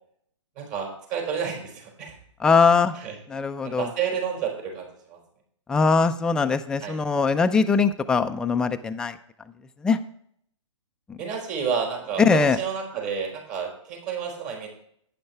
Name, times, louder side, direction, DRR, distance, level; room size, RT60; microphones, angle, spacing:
voice 1, 0.6-2.1 2.9-3.1 3.6-5.2 6.8-7.0 11.2-14.7, right 6 dB, 40° right, 1 dB, 4.4 m, -30 dB
voice 2, 2.4-3.0 3.3-3.9 5.7-9.2 9.8-10.0 11.1-11.2 12.2-12.6, left 5 dB, 5° left, 7 dB, 0.4 m, -21 dB
11.5 x 9.3 x 3.4 m, 0.67 s
hypercardioid pair, 135°, 16 cm